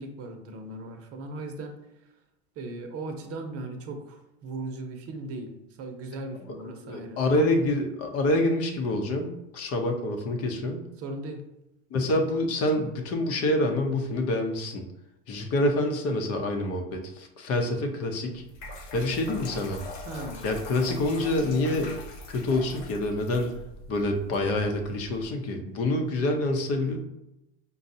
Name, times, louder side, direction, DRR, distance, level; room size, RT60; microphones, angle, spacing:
voice 1, 0.0-1.8 2.6-5.5 5.8-7.5 11.0-11.4 20.0-20.5, right 2 dB, 45° right, 5 dB, 0.8 m, -37 dB
voice 2, 6.8-10.8 11.9-14.8 15.3-18.4 18.9-19.8 20.4-22.0 22.3-23.5 23.9-27.0, left 1 dB, 45° left, 4 dB, 0.8 m, -27 dB
sound 1, 18.3-25.3, left 2 dB, 75° left, 1.2 m, -42 dB
5.4 x 2.3 x 2.7 m, 0.89 s
supercardioid pair, 100°, 33 cm